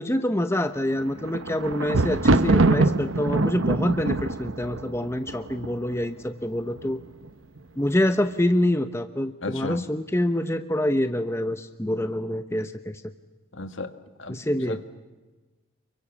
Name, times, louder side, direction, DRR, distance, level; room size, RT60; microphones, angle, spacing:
voice 1, 0.0-7.0 7.8-13.0 14.3-14.8, left 1 dB, 10° left, 0.8 m, -26 dB
Thunder, 0.9-6.0 6.8-7.3 7.6-7.7, right 2 dB, 70° right, 1.0 m, -23 dB
voice 2, 9.4-9.9 13.5-13.9 14.2-14.4 14.7-14.8, left 3 dB, 65° left, 1.8 m, -33 dB
28.5 x 23.5 x 7.3 m
head